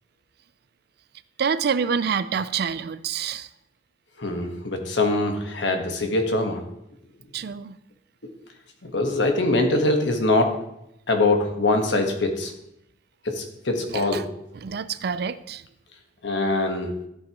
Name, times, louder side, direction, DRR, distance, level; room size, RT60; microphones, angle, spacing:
voice 1, 1.4-3.5 7.3-7.8 13.9-14.3 14.5-15.7, right 6 dB, 60° right, 15 dB, 0.4 m, -27 dB
voice 2, 4.2-6.6 8.8-10.5 11.1-12.5 13.2-14.2 16.2-16.9, left 2 dB, 85° left, 4 dB, 1.4 m, -23 dB
13.0 x 7.7 x 3.0 m, 0.81 s
head